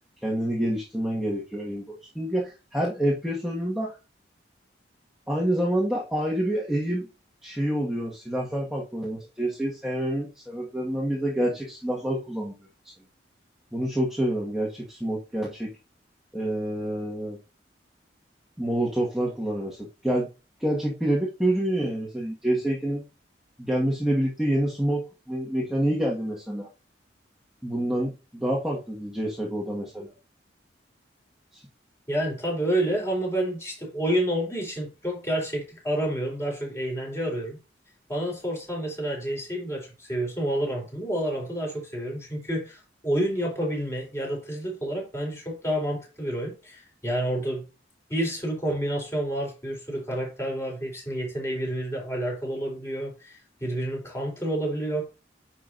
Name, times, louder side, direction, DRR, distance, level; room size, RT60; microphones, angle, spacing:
voice 1, 0.2-3.9 5.3-7.1 7.4-12.6 13.7-15.7 16.3-17.4 18.6-20.3 20.6-23.0 23.6-26.7 27.6-30.1 31.5-31.6, right 1 dB, ahead, 1.8 m, -27 dB
voice 2, 32.1-37.6 38.1-47.7 48.1-55.1, right 1 dB, 15° left, 4.1 m, -29 dB
10.0 x 5.9 x 2.7 m
head